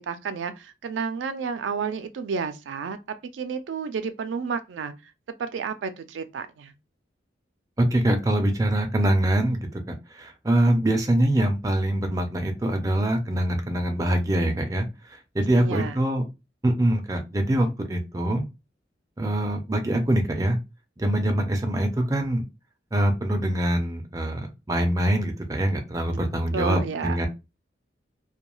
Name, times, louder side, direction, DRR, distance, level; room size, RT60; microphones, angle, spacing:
voice 1, 0.0-4.9 5.4-6.7 15.5-16.0 26.5-27.2, right 5 dB, 90° right, 0.4 m, -31 dB
voice 2, 7.8-14.9 15.3-16.2 16.6-18.4 19.2-20.6 21.0-22.4 22.9-27.3, right 1 dB, 20° right, 0.4 m, -24 dB
2.2 x 2.2 x 3.0 m
head